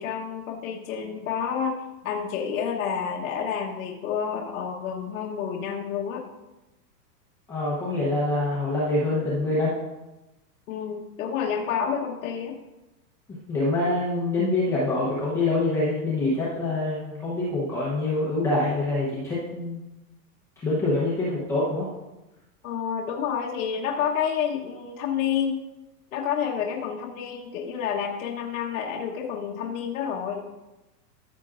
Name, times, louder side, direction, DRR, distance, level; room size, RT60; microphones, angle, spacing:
voice 1, 0.0-6.3 10.7-12.6 22.6-25.6 26.1-30.5, left 7 dB, 60° left, -1 dB, 1.2 m, -29 dB
voice 2, 7.5-9.7 13.5-19.8 20.6-21.9, left 2 dB, 5° left, -8 dB, 0.8 m, -25 dB
14.0 x 6.8 x 2.5 m, 1.0 s
supercardioid pair, 175°, 48 cm